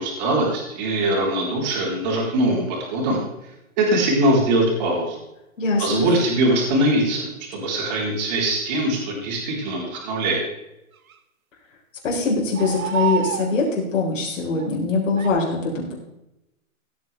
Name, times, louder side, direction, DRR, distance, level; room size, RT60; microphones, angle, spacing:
voice 1, 0.0-3.2 3.8-5.2 5.8-10.4, right 1 dB, 30° right, -2 dB, 3.6 m, -22 dB
sound 1, 2.7-2.8 6.1-6.2 8.2-8.3 10.9-11.2 12.5-13.6 14.6-14.8 15.2-15.3, right 9 dB, 75° right, 1.4 m, -27 dB
voice 2, 5.6-6.1 12.0-15.9, left 3 dB, 60° left, -2 dB, 4.5 m, -23 dB
16.5 x 8.8 x 3.4 m, 0.89 s
hypercardioid pair, 165°, 42 cm